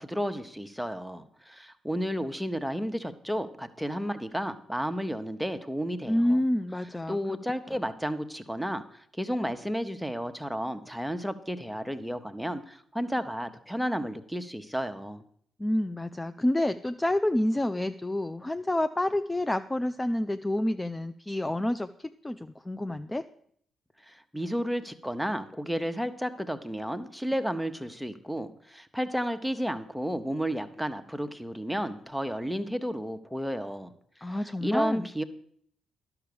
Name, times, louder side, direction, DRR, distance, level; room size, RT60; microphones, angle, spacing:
voice 1, 0.0-6.4 7.1-15.2 24.1-33.9 34.2-35.2, equal, ahead, 8 dB, 0.9 m, -32 dB
voice 2, 6.1-7.4 15.6-23.2 34.2-35.1, left 1 dB, 15° left, 10 dB, 0.4 m, -28 dB
11.5 x 5.9 x 6.9 m, 0.65 s
hypercardioid pair, 45°, 0 cm